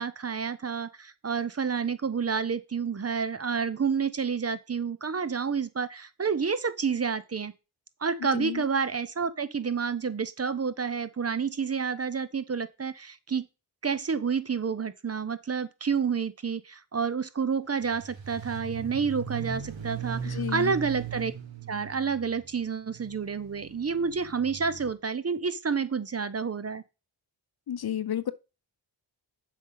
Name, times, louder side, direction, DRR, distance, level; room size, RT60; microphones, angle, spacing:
voice 1, 0.0-7.5 8.0-13.5 13.8-21.3 21.7-26.8, right 6 dB, 35° right, 0.8 m, -29 dB
voice 2, 8.2-8.6 20.2-20.7 27.7-28.3, left 10 dB, 55° left, 0.7 m, -32 dB
sound 1, 17.8-24.9, right 7 dB, 85° right, 1.4 m, -38 dB
7.5 x 5.0 x 5.7 m
cardioid pair, 75°, 44 cm